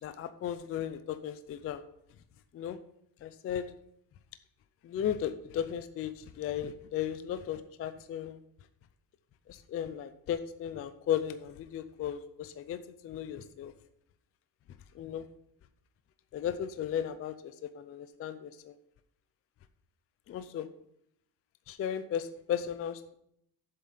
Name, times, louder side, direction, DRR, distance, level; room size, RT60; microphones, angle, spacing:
voice 1, 0.0-1.9 2.5-2.8 3.2-3.7 4.8-8.4 9.5-13.7 14.9-15.3 16.3-18.7 20.3-20.7 21.7-23.2, left 9 dB, 35° left, 11 dB, 0.4 m, -35 dB
7.7 x 7.3 x 5.6 m, 0.75 s
cardioid pair, 175°, 44 cm